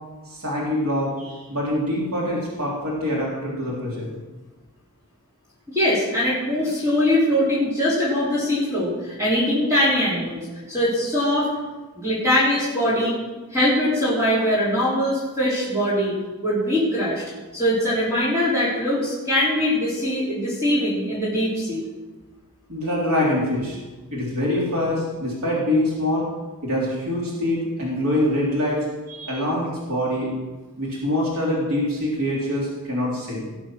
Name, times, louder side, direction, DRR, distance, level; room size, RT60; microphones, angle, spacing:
voice 1, 0.3-4.1 22.7-23.8 24.1-26.3 26.6-28.9 29.2-30.3 30.8-33.4, left 1 dB, 75° right, -4 dB, 3.4 m, -24 dB
voice 2, 5.7-11.5 12.0-13.2 13.5-16.1 16.4-17.2 17.5-21.9 29.1-29.3, left 1 dB, 15° right, -8 dB, 4.0 m, -22 dB
18.5 x 7.2 x 6.2 m, 1.2 s
head